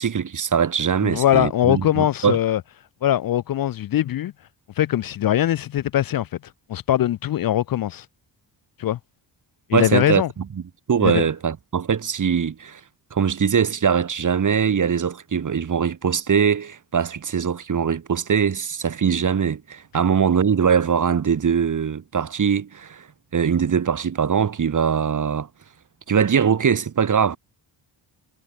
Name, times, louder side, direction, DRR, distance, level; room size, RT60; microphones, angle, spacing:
voice 1, 0.0-2.4 9.7-10.2 10.9-12.8 13.1-23.0 23.3-25.5 26.1-27.4, right 7 dB, 45° right, 2.0 m, -21 dB
voice 2, 1.0-2.6 3.0-4.3 4.8-6.3 6.7-8.1 8.8-9.0 9.7-10.3 11.0-11.3, left 12 dB, 50° left, 0.5 m, -21 dB
cardioid pair, 120°, 44 cm